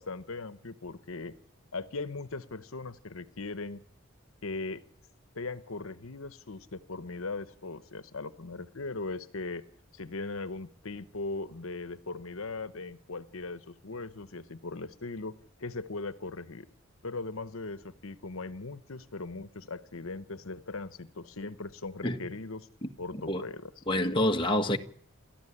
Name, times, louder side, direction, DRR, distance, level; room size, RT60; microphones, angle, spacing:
voice 1, 0.0-1.3 1.7-3.8 4.4-4.8 5.3-9.6 9.9-15.3 15.6-16.7 17.0-22.7 23.0-23.8, left 3 dB, 80° left, 1.1 m, -39 dB
voice 2, 23.9-24.8, left 1 dB, 25° left, 1.5 m, -27 dB
29.0 x 13.5 x 10.0 m
head